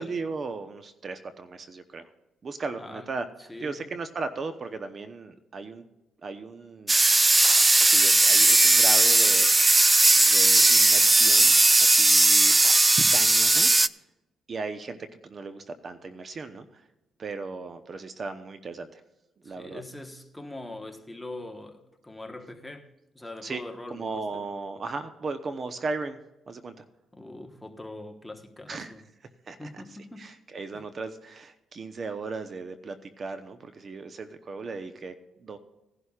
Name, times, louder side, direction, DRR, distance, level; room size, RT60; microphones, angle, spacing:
voice 1, 0.0-2.1 2.4-5.8 6.2-7.0 7.8-12.5 13.1-13.7 14.5-16.9 17.2-19.0 19.4-19.8 23.4-23.6 23.9-26.2 26.5-26.8 28.7-28.9 29.4-29.8 30.2-35.6, right 4 dB, 45° right, 0.9 m, -37 dB
voice 2, 2.8-3.1 3.5-3.9 19.4-24.5 27.1-29.0 29.6-30.3 30.7-30.8, left 2 dB, 5° left, 1.3 m, -42 dB
sound 1, 6.9-13.9, right 2 dB, 20° right, 0.3 m, -18 dB
18.5 x 11.0 x 2.4 m
cardioid pair, 90°, 0 cm